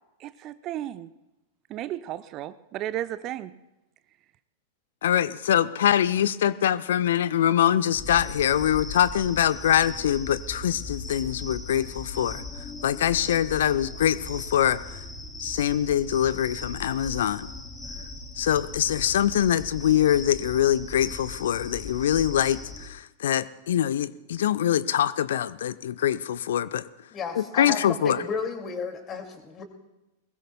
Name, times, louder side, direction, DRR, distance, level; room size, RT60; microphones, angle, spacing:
voice 1, 0.2-1.1 1.7-3.5, right 13 dB, 35° right, 0.5 m, -34 dB
voice 2, 5.0-12.4 12.8-15.0 15.4-17.5 18.4-26.9 27.4-28.2, left 10 dB, 60° left, 0.5 m, -24 dB
sound 1, 7.9-22.9, left 2 dB, 10° left, 2.1 m, -39 dB
voice 3, 27.1-29.6, left 5 dB, 25° left, 2.2 m, -33 dB
22.0 x 20.5 x 2.2 m
figure-of-eight pair, 95°, 0 cm